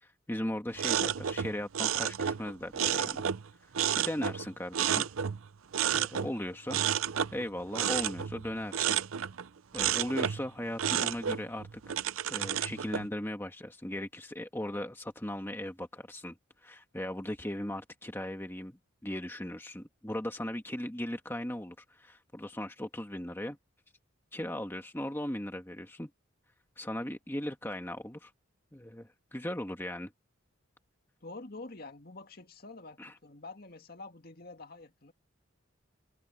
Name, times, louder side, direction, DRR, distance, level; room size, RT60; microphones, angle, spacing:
voice 1, 0.0-3.2 3.9-5.1 5.9-6.8 7.3-9.0 9.7-12.0 12.3-16.4 16.6-23.6 24.3-26.1 26.8-28.3 28.7-30.1 33.0-33.1, left 1 dB, 10° left, 1.4 m, -38 dB
sound 1, 0.8-3.5 3.7-5.5 5.7-6.3 6.7-9.5 9.7-10.5 10.8-13.1, right 9 dB, 90° right, 0.6 m, -31 dB
voice 2, 31.2-35.1, left 3 dB, 45° left, 2.1 m, -47 dB
head